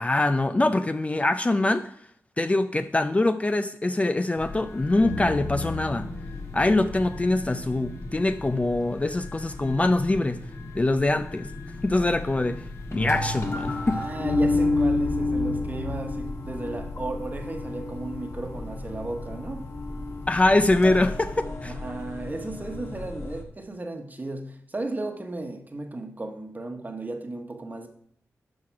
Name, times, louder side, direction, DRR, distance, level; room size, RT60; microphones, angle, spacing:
voice 1, 0.0-1.9 2.4-6.1 6.5-10.4 10.7-11.5 11.8-12.7 12.9-14.0 20.3-21.7, left 2 dB, 25° left, 0.5 m, -23 dB
sound 1, 4.4-23.4, left 2 dB, 55° left, 1.5 m, -32 dB
voice 2, 13.9-19.7 21.6-27.9, right 2 dB, 30° right, 1.3 m, -35 dB
12.0 x 4.7 x 4.7 m
cardioid pair, 65°, 6 cm